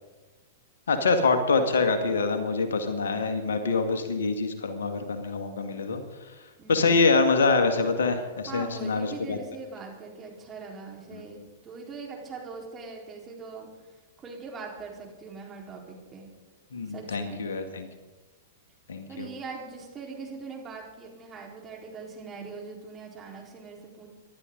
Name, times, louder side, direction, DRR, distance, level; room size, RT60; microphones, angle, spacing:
voice 1, 0.9-6.0 6.7-9.4 11.1-11.2 16.7-17.9 18.9-19.3, left 4 dB, 70° left, 7 dB, 1.8 m, -25 dB
voice 2, 6.6-7.0 8.5-13.7 14.2-16.3 16.9-17.5 19.1-24.1, right 4 dB, 20° right, -1 dB, 4.3 m, -41 dB
25.0 x 12.0 x 3.9 m, 1.2 s
figure-of-eight pair, 105°, 0 cm